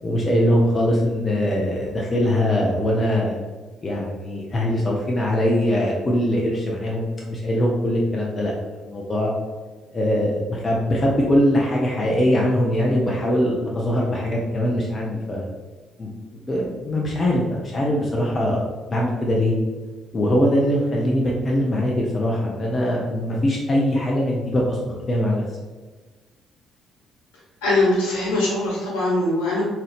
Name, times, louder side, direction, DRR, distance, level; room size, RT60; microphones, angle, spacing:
voice 1, 0.0-3.4 3.8-8.5 8.8-9.3 9.9-15.5 16.0-18.6 18.9-19.5 20.1-25.4, left 1 dB, 35° left, -2 dB, 0.6 m, -22 dB
voice 2, 27.6-29.6, left 2 dB, 75° left, -6 dB, 1.4 m, -21 dB
3.7 x 2.8 x 3.4 m, 1.3 s
figure-of-eight pair, 45°, 0 cm